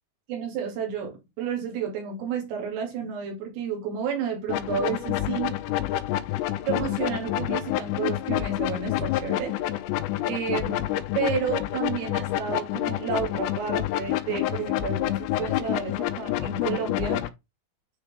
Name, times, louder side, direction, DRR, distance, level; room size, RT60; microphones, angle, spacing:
voice 1, 0.3-5.5 6.6-9.6 10.2-10.9 11.2-17.2, right 6 dB, 90° right, 5.0 m, -31 dB
sound 1, 4.5-17.3, left 14 dB, 80° left, 2.7 m, -28 dB
9.7 x 4.3 x 3.4 m
omnidirectional pair, 5.7 m